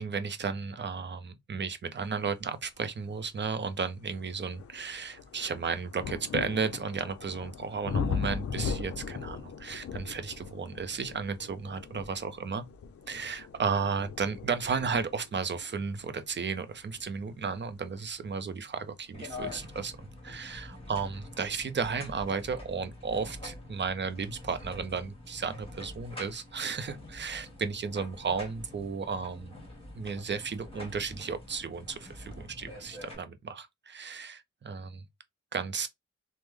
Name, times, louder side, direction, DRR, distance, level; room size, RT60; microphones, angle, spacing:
voice 1, 0.0-12.6 13.1-19.9 20.2-29.5 29.9-34.9 35.5-35.9, right 5 dB, 35° right, 0.5 m, -34 dB
sound 1, 3.1-3.2 3.8-18.4 19.3-19.4, left 6 dB, 50° left, 0.5 m, -39 dB
sound 2, 19.1-33.1, left 2 dB, 20° left, 1.4 m, -46 dB
3.3 x 2.0 x 3.1 m
wide cardioid pair, 95°, 31 cm